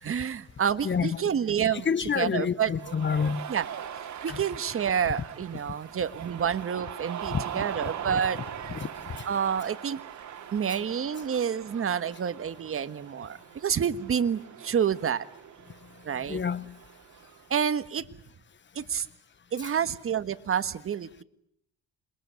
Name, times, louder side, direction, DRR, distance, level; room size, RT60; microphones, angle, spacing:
voice 1, 0.0-1.9 2.1-2.7 3.5-3.9 4.2-8.4 9.2-10.0 10.5-15.3 16.0-16.4 17.5-18.1 18.7-19.1 19.5-21.2, right 8 dB, 45° right, 1.5 m, -28 dB
voice 2, 0.8-1.3 1.7-3.4 4.3-4.4 7.3-7.6 8.7-8.9 16.3-16.7, left 6 dB, 40° left, 1.1 m, -28 dB
Cheering, 2.7-17.6, right 9 dB, 65° right, 2.9 m, -41 dB
28.0 x 22.0 x 9.5 m
cardioid pair, 90°, 30 cm